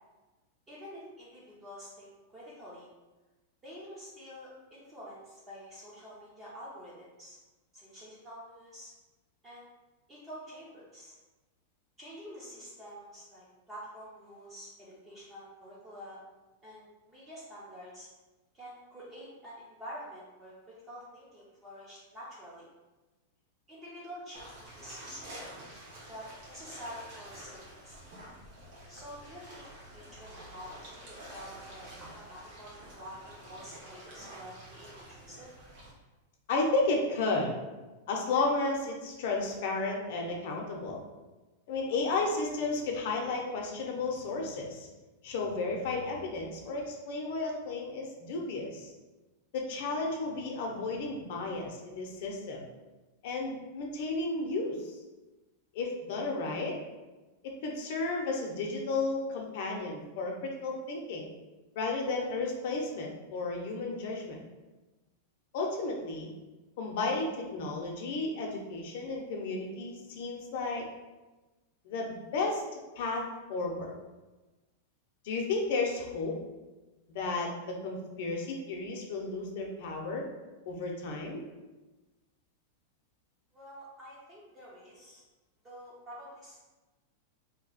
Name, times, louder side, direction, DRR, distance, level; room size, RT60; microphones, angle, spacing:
voice 1, 0.7-2.9 3.6-7.4 7.7-8.9 9.4-9.7 10.1-11.1 12.0-16.2 16.6-18.1 18.5-22.6 23.7-25.5 26.1-28.0 28.9-35.5 83.5-85.2 85.6-86.6, equal, 15° right, -7 dB, 0.6 m, -48 dB
sound 1, 24.3-35.9, right 1 dB, 45° right, 1.0 m, -49 dB
voice 2, 36.5-37.5 38.1-41.0 41.7-44.9 45.2-48.9 49.5-52.7 53.2-55.0 55.7-56.7 57.4-61.3 61.8-64.4 65.5-66.3 66.8-70.9 71.8-72.6 73.0-73.9 75.2-76.4 77.1-80.3 80.7-81.4, left 3 dB, 55° left, 0 dB, 0.7 m, -33 dB
2.8 x 2.2 x 4.0 m, 1.2 s
supercardioid pair, 165°, 0 cm